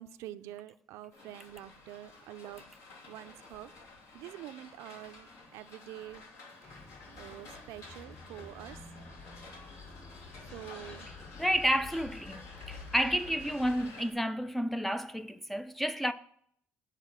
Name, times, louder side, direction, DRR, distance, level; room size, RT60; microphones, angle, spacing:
voice 1, 0.0-2.6 3.1-3.7 4.1-5.3 5.5-6.2 6.6-6.7 7.1-8.8 10.5-11.1, right 13 dB, 75° right, 0.5 m, -46 dB
sound 1, 1.1-14.1, left 3 dB, 65° left, 2.4 m, -52 dB
sound 2, 6.6-13.9, left 3 dB, 35° left, 2.1 m, -50 dB
voice 2, 11.4-16.1, equal, 5° left, 0.5 m, -31 dB
8.3 x 5.2 x 7.4 m
cardioid pair, 120°, 5 cm